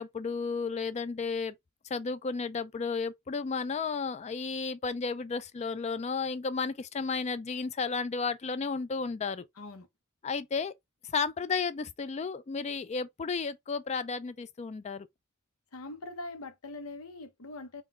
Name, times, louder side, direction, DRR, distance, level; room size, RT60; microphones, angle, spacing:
voice 1, 0.0-1.5 1.8-9.5 10.2-10.7 11.1-15.1, left 4 dB, 30° left, 0.3 m, -33 dB
voice 2, 9.6-9.9 15.7-17.8, left 2 dB, 85° left, 0.9 m, -42 dB
3.7 x 2.3 x 3.3 m
head